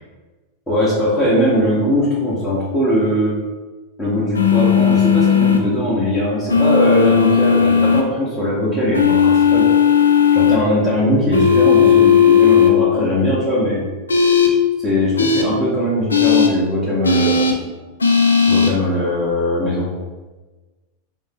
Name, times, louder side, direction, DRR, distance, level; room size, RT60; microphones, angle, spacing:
voice 1, 0.7-3.3 4.0-9.7 10.3-13.8 14.8-17.5 18.5-19.9, left 1 dB, 15° left, -9 dB, 1.0 m, -19 dB
sound 1, 4.3-5.6 6.5-8.0 8.9-10.6 11.3-12.7 14.1-14.5 15.2-15.4 16.1-16.5 17.0-17.5 18.0-18.7, left 7 dB, 75° left, 0.4 m, -14 dB
3.6 x 2.1 x 3.5 m, 1.2 s
figure-of-eight pair, 90°, 0 cm